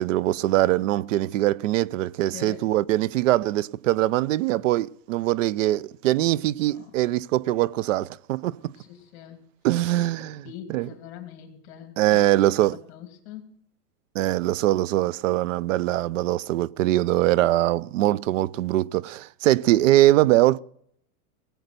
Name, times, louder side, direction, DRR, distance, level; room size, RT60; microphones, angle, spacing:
voice 1, 0.0-8.5 9.6-10.9 12.0-12.8 14.2-20.6, right 15 dB, 60° right, 0.5 m, -22 dB
voice 2, 2.3-2.6 6.2-6.3 6.7-6.9 8.7-9.4 10.2-12.2 12.6-13.4, left 10 dB, 50° left, 2.7 m, -43 dB
18.5 x 7.9 x 6.7 m
supercardioid pair, 165°, 43 cm